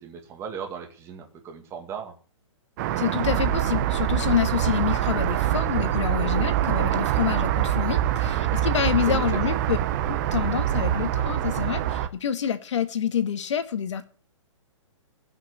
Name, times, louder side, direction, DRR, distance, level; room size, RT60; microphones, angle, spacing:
voice 1, 0.0-2.1 9.0-9.6, right 7 dB, 15° right, 2.3 m, -37 dB
sound 1, 2.8-12.1, right 11 dB, 35° right, 1.0 m, -24 dB
voice 2, 3.0-9.8 10.1-14.0, left 8 dB, 65° left, 1.9 m, -27 dB
16.0 x 6.2 x 8.2 m
hypercardioid pair, 155°, 17 cm